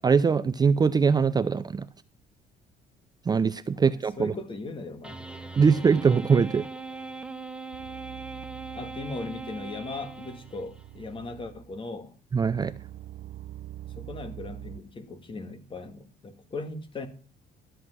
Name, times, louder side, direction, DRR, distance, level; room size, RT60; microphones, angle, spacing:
voice 1, 0.0-1.9 3.3-4.3 5.6-6.6 12.3-12.7, right 5 dB, 25° right, 0.5 m, -22 dB
voice 2, 4.2-5.3 8.7-12.2 13.9-17.1, left 3 dB, 30° left, 2.0 m, -38 dB
sound 1, 5.0-10.8, right 3 dB, 5° right, 1.2 m, -40 dB
sound 2, 7.2-7.3 7.7-11.8 12.3-14.8, right 13 dB, 80° right, 0.8 m, -44 dB
12.5 x 7.8 x 6.1 m
cardioid pair, 110°, 17 cm